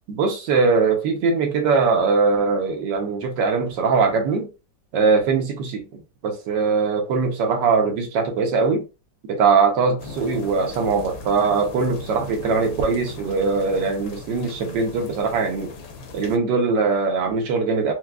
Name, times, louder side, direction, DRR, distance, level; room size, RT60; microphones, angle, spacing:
voice 1, 0.1-4.5 4.9-8.8 9.3-15.7 16.1-17.9, right 4 dB, 70° right, 1.3 m, -21 dB
sound 1, 10.0-16.4, left 4 dB, 70° left, 0.9 m, -39 dB
4.6 x 2.2 x 2.3 m
omnidirectional pair, 2.1 m